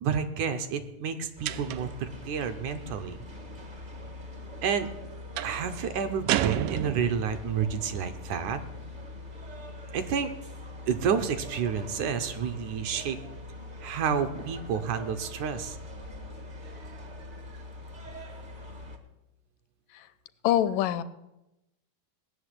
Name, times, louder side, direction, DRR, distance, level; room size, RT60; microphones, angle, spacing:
voice 1, 0.0-3.2 4.6-4.9 5.4-8.6 9.9-10.3 10.9-13.2 13.8-15.8 16.8-16.9, right 7 dB, 70° right, 8 dB, 2.2 m, -30 dB
sound 1, 1.4-19.0, left 2 dB, 45° right, 0.6 m, -43 dB
sound 2, 1.5-2.0 5.4-5.7 6.3-7.4, right 13 dB, 85° right, 2.4 m, -30 dB
voice 2, 20.4-21.0, left 11 dB, 80° left, 13 dB, 2.2 m, -25 dB
18.0 x 6.9 x 10.0 m, 0.93 s
omnidirectional pair, 3.9 m